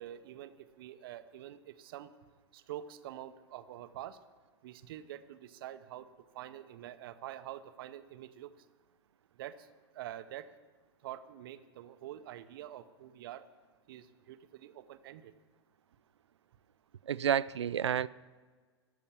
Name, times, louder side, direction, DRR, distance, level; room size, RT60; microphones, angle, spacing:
voice 1, 0.0-2.1 2.5-4.2 4.6-6.1 6.3-8.5 9.4-9.7 9.9-10.5 11.0-13.4 13.9-15.3, right 12 dB, 55° right, 12 dB, 0.8 m, -46 dB
voice 2, 17.1-18.1, right 9 dB, 75° right, 20 dB, 0.4 m, -30 dB
14.0 x 7.1 x 7.0 m, 1.5 s
figure-of-eight pair, 105°, 15 cm